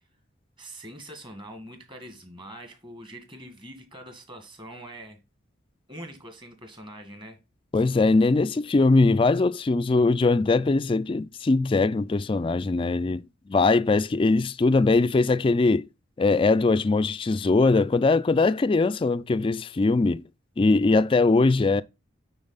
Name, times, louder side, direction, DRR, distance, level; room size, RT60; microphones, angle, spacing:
voice 1, 0.6-5.2 5.9-7.4, right 1 dB, 25° right, 1.8 m, -43 dB
voice 2, 7.7-13.2 13.5-15.9 16.2-20.2 20.6-21.8, left 3 dB, 25° left, 0.3 m, -21 dB
8.8 x 4.1 x 3.9 m
head